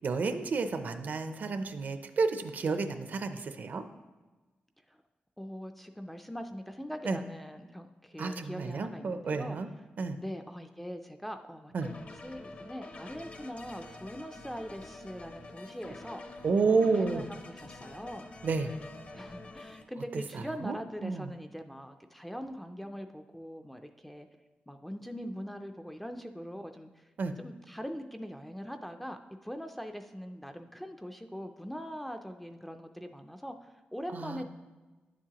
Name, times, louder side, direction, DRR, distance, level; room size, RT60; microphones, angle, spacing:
voice 1, 0.0-3.8 7.0-7.2 8.2-9.7 10.0-10.2 11.7-11.9 16.4-17.2 18.4-18.7 20.1-20.8 21.0-21.3 27.2-27.3 34.1-34.4, right 4 dB, 55° right, 8 dB, 0.5 m, -30 dB
voice 2, 5.4-9.6 10.2-11.9 12.2-16.4 16.7-18.3 19.1-24.3 24.7-26.9 27.4-34.4, equal, 5° left, 6 dB, 0.3 m, -42 dB
sound 1, 11.8-19.8, left 2 dB, 40° left, 0.6 m, -47 dB
10.5 x 7.3 x 2.9 m, 1.2 s
wide cardioid pair, 170°, 4 cm